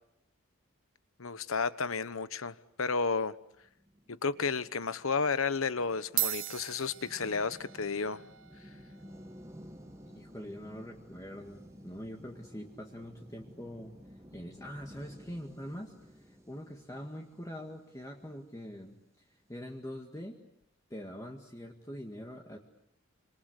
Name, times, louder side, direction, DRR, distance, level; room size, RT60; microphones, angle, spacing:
voice 1, 1.2-3.3 4.1-8.2, left 4 dB, 80° left, 1.1 m, -32 dB
sound 1, 3.6-19.1, equal, 15° right, 1.3 m, -54 dB
sound 2, 4.5-4.8 5.7-5.8 6.0-14.7, right 15 dB, 70° right, 1.0 m, -42 dB
voice 2, 10.1-13.9 14.3-19.0 19.5-20.4 20.9-22.6, equal, 15° left, 1.9 m, -44 dB
27.0 x 26.0 x 8.2 m
head